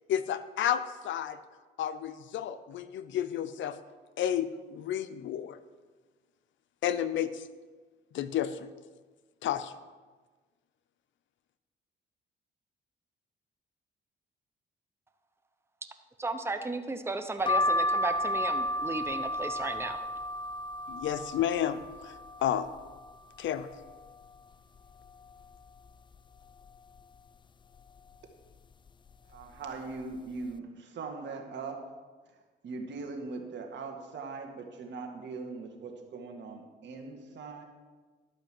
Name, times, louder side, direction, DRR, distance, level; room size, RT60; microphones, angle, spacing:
voice 1, 0.1-1.4 1.8-3.8 4.2-5.6 6.8-7.4 8.1-8.7 9.4-9.7 20.9-22.7 23.4-23.7, left 10 dB, 75° left, 13 dB, 0.6 m, -31 dB
voice 2, 16.2-20.1, right 2 dB, 10° right, 8 dB, 0.8 m, -34 dB
sound 1, 17.5-23.1 23.6-24.4 24.8-24.9 25.0-26.2 26.6-27.0 27.8-28.1 28.9-29.1 29.4-29.6, left 1 dB, 25° left, 0.4 m, -33 dB
voice 3, 29.3-31.8 32.6-37.6, right 4 dB, 65° right, 3 dB, 1.8 m, -40 dB
11.5 x 5.2 x 7.7 m, 1.4 s
cardioid pair, 90°, 20 cm